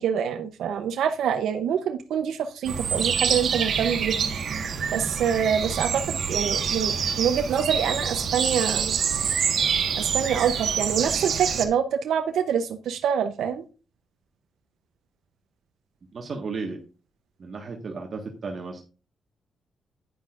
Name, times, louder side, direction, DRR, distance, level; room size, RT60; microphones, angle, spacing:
voice 1, 0.0-4.2 4.9-9.0 10.0-13.6, right 8 dB, 85° right, 7 dB, 0.7 m, -26 dB
sound 1, 2.6-11.6, right 6 dB, 60° right, 1.4 m, -26 dB
voice 2, 16.1-16.8 17.4-18.8, right 4 dB, 45° right, 2 dB, 1.5 m, -34 dB
10.5 x 9.5 x 2.5 m, 0.34 s
cardioid pair, 130°, 0 cm